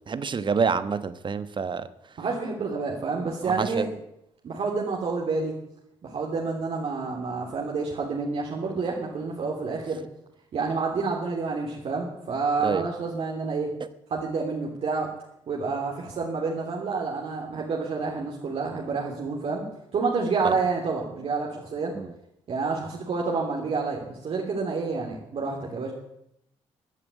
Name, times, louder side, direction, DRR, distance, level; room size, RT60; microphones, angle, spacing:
voice 1, 0.1-1.9 3.4-3.8 12.6-12.8 20.4-20.5 21.9-22.1, right 5 dB, 45° right, 14 dB, 1.3 m, -27 dB
voice 2, 2.2-3.9 4.4-5.5 6.0-10.0 10.5-13.7 14.1-15.1 15.5-19.6 19.9-22.0 22.5-25.9, right 4 dB, 60° right, -1 dB, 3.2 m, -29 dB
16.5 x 9.1 x 8.4 m, 0.79 s
supercardioid pair, 60°, 12 cm